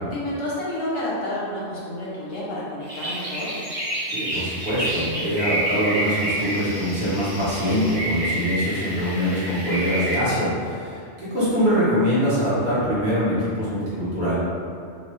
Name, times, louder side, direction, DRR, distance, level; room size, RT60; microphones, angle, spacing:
voice 1, 0.1-3.5, left 1 dB, 60° left, -7 dB, 0.9 m, -30 dB
sound 1, 2.8-10.1, right 1 dB, 35° right, 0.6 m, -29 dB
voice 2, 4.1-14.4, equal, 65° right, -11 dB, 1.4 m, -23 dB
2.9 x 2.2 x 3.0 m, 2.4 s
omnidirectional pair, 1.2 m